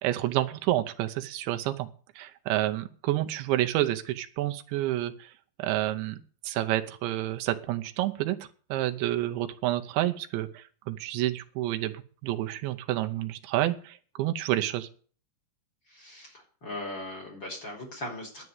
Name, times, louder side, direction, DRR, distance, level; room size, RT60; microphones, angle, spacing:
voice 1, 0.0-1.9 2.2-5.3 5.6-6.2 6.4-8.4 8.7-11.9 12.2-14.9, right 14 dB, 80° right, 7 dB, 3.1 m, -29 dB
voice 2, 15.9-18.4, left 1 dB, 25° left, 1 dB, 4.1 m, -39 dB
11.0 x 8.3 x 9.4 m, 0.43 s
omnidirectional pair, 5.2 m